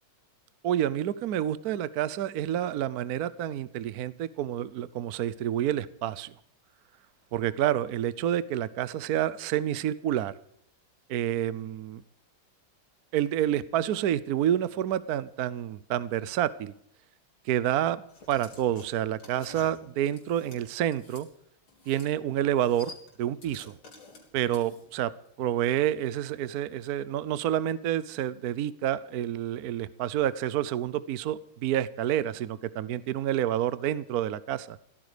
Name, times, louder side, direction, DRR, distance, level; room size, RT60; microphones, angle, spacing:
voice 1, 0.6-6.3 7.3-10.3 11.1-12.0 13.1-16.7 17.4-21.3 21.9-22.9 23.2-23.7 24.3-25.1 25.4-34.8, right 11 dB, 65° right, 16 dB, 1.0 m, -28 dB
sound 1, 18.1-21.3 21.7-22.1 22.4-25.0, left 3 dB, 80° left, 4.5 m, -50 dB
16.5 x 13.5 x 5.1 m, 0.69 s
omnidirectional pair, 2.2 m